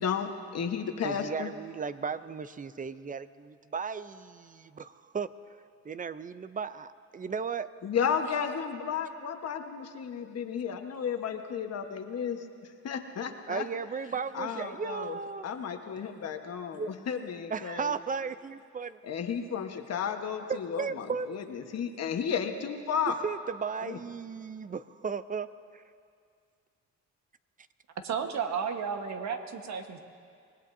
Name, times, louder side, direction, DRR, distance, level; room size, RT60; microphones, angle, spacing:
voice 1, 0.0-1.5 7.8-12.5 12.8-13.7 14.3-15.2 15.4-18.0 19.0-23.2 23.8-24.0, left 7 dB, 55° left, 5 dB, 1.3 m, -33 dB
voice 2, 1.0-5.3 5.8-7.7 13.5-15.5 16.7-16.9 17.5-19.0 20.8-21.5 23.2-25.5 25.7-25.8, right 6 dB, 25° right, 13 dB, 0.5 m, -35 dB
voice 3, 28.0-30.0, right 6 dB, 65° right, 5 dB, 1.4 m, -33 dB
25.0 x 20.0 x 2.7 m, 2.2 s
cardioid pair, 90°, 30 cm